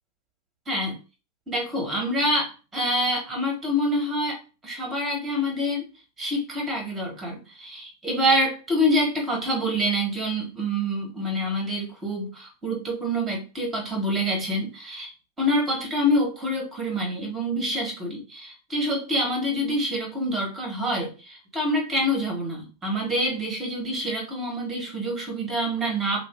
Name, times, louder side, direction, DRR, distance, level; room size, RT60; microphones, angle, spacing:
voice 1, 0.7-1.0 1.5-4.4 4.6-5.9 6.2-15.1 15.4-26.3, equal, 15° right, 0 dB, 1.3 m, -26 dB
2.5 x 2.5 x 3.6 m, 0.33 s
figure-of-eight pair, 90°, 0 cm